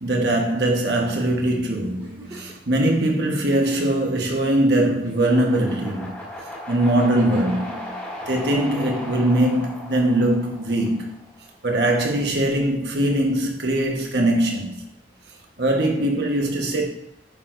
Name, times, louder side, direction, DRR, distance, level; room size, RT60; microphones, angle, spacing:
voice 1, 0.0-6.2 6.7-8.0 8.3-11.1 11.6-14.8 15.6-16.8, right 1 dB, 60° right, 1.3 m, -21 dB
Giggle, 2.0-2.6 3.4-3.9 4.6-4.7 5.0-5.8 7.0-7.6 8.8-9.4 10.7-11.2 12.6-12.7, right 2 dB, 25° right, 1.9 m, -42 dB
sound 1, 5.3-11.4, left 1 dB, 10° left, 1.7 m, -36 dB
9.2 x 6.0 x 2.6 m
head